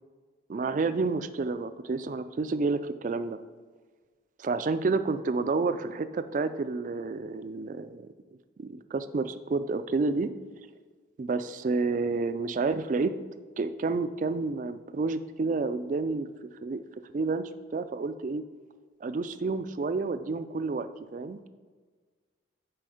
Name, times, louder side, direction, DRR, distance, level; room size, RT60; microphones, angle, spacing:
voice 1, 0.5-3.4 4.4-8.1 8.6-10.3 11.2-13.1 13.6-16.3 16.6-16.8 17.1-18.4 19.0-21.5, right 3 dB, 40° right, 12 dB, 0.3 m, -30 dB
7.7 x 4.5 x 4.9 m, 1.5 s
head